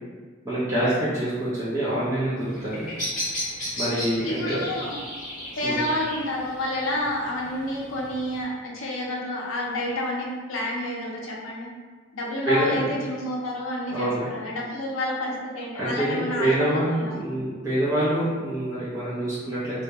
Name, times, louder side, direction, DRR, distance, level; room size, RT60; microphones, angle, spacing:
voice 1, 0.4-2.9 3.8-4.6 5.6-5.8 12.4-12.8 13.9-14.3 15.7-19.8, right 1 dB, 15° right, -12 dB, 0.6 m, -26 dB
Bird vocalization bird call bird song, 2.4-8.4, left 1 dB, 40° left, 0.9 m, -35 dB
voice 2, 4.2-5.0 5.6-11.7 12.1-17.2, left 1 dB, 75° left, -2 dB, 0.5 m, -29 dB
2.3 x 2.1 x 2.8 m, 1.4 s
head